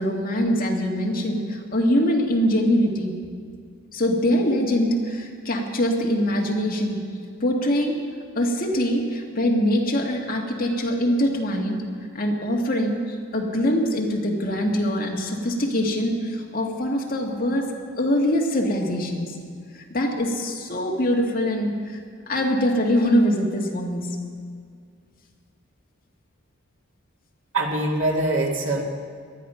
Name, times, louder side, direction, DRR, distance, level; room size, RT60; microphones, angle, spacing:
voice 1, 0.0-3.1 3.9-7.0 7.4-8.0 8.4-11.8 12.1-19.3 19.7-22.0 22.3-24.1, equal, 45° left, 0 dB, 2.1 m, -23 dB
voice 2, 27.5-28.8, right 2 dB, 65° right, 0 dB, 2.4 m, -23 dB
19.5 x 12.5 x 5.8 m, 2.1 s
head